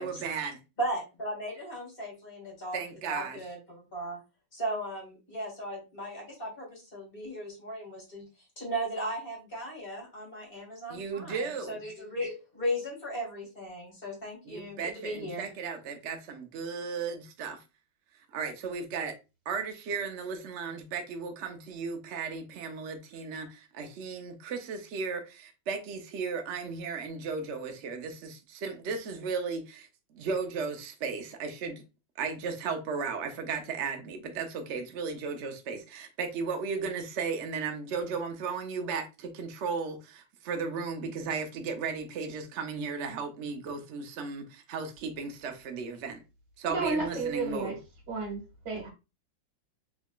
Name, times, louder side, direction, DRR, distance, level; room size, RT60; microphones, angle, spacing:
voice 1, 0.0-0.6 2.7-3.4 10.9-11.8 14.4-17.6 18.3-19.1 19.5-31.8 32.2-46.2 46.6-47.8, right 5 dB, 80° right, 0.6 m, -35 dB
voice 2, 0.8-2.8 3.1-4.2 4.5-8.3 8.6-15.5, right 1 dB, 30° left, 1.7 m, -36 dB
voice 3, 46.7-47.8 48.1-48.9, right 3 dB, 65° right, 2.1 m, -32 dB
3.6 x 3.6 x 2.3 m
omnidirectional pair, 2.1 m